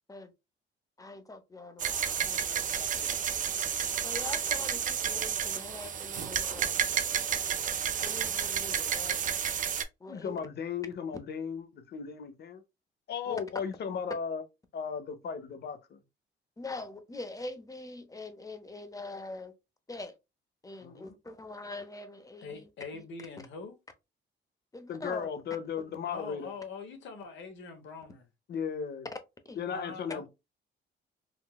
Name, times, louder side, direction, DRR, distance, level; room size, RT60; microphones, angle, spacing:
voice 1, 1.0-3.1 4.0-6.9 8.0-9.2 10.0-10.4 13.3-13.4 16.6-19.5 19.9-20.1 20.6-23.0 24.7-25.3 26.1-26.2 29.4-29.7, left 2 dB, 15° left, 0.6 m, -43 dB
sound 1, 1.8-9.8, right 8 dB, 40° right, 0.4 m, -31 dB
voice 2, 10.1-12.6 13.1-14.4 14.7-16.0 20.8-21.2 24.9-26.5 28.5-29.1 29.6-30.3, left 6 dB, 55° left, 0.7 m, -36 dB
voice 3, 22.4-23.8 26.1-28.2 29.7-30.3, left 4 dB, 70° left, 0.9 m, -43 dB
3.8 x 2.2 x 2.2 m
cardioid pair, 90°, 20 cm